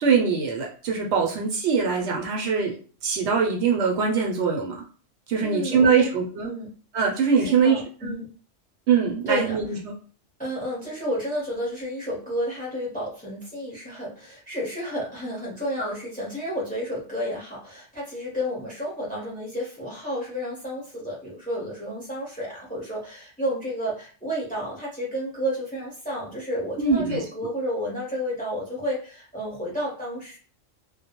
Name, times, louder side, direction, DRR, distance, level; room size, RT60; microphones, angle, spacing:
voice 1, 0.0-2.8 3.0-4.8 5.3-6.5 6.9-8.1 8.9-9.9 26.8-27.2, right 5 dB, 70° right, 1 dB, 0.8 m, -22 dB
voice 2, 5.4-6.1 6.4-6.8 7.3-8.3 9.3-9.6 10.4-30.4, equal, 10° left, -5 dB, 0.6 m, -31 dB
2.2 x 2.0 x 2.8 m, 0.39 s
omnidirectional pair, 1.3 m